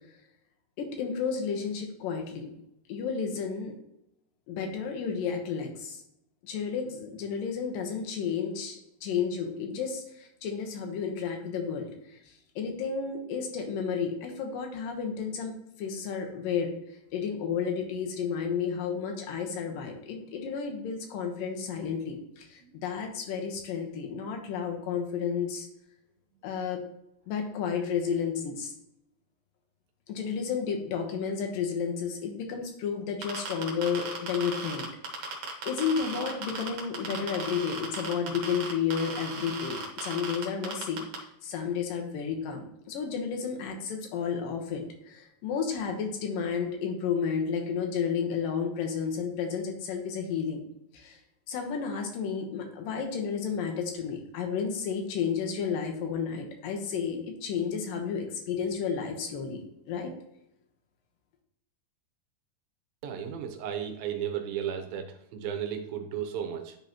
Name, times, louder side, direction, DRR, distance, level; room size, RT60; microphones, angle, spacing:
voice 1, 0.8-2.5 2.9-3.7 4.5-6.0 6.4-11.9 12.6-15.5 15.8-16.8 17.1-25.7 26.4-26.8 27.3-28.7 30.1-34.9 35.2-35.3 35.7-41.1 41.4-50.6 50.9-51.2 51.5-59.6 59.9-60.1, left 6 dB, 75° left, 3 dB, 2.6 m, -32 dB
sound 1, 33.2-41.2, right 4 dB, 60° right, 2.5 m, -36 dB
voice 2, 63.0-66.8, right 9 dB, 80° right, 6 dB, 2.5 m, -34 dB
11.0 x 3.9 x 2.9 m, 0.79 s
omnidirectional pair, 4.3 m